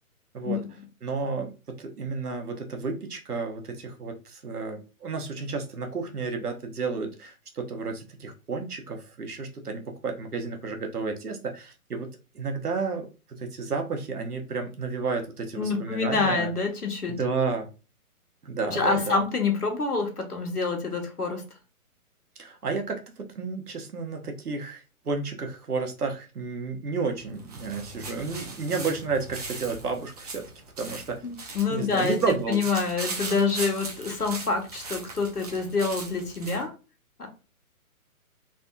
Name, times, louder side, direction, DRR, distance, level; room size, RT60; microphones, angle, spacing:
voice 1, 1.0-12.1 12.3-16.5 17.2-17.7 18.4-19.2 22.4-30.5 30.8-31.2 31.7-32.6, right 4 dB, 80° right, 4 dB, 1.0 m, -31 dB
voice 2, 15.5-17.1 18.7-21.4 31.2-32.2 32.5-36.7 37.2-37.3, left 4 dB, 90° left, 3 dB, 1.2 m, -27 dB
sound 1, 27.2-36.6, right 3 dB, 25° right, 0.6 m, -39 dB
3.4 x 2.7 x 2.2 m, 0.32 s
figure-of-eight pair, 135°, 45 cm